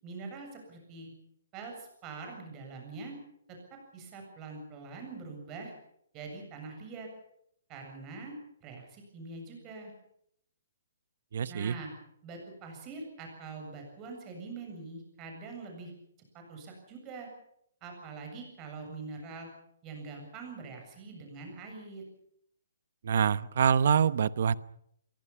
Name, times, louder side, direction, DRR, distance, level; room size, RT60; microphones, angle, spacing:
voice 1, 0.0-1.1 1.5-3.2 3.5-5.7 6.1-7.1 7.7-9.9 11.5-11.9 12.2-15.9 16.3-17.3 17.8-19.5 19.8-22.0, right 4 dB, 20° right, 3 dB, 7.5 m, -44 dB
voice 2, 11.3-11.7 23.0-24.5, right 7 dB, 50° right, 17 dB, 1.0 m, -25 dB
25.5 x 23.0 x 5.8 m, 0.70 s
hypercardioid pair, 175°, 0 cm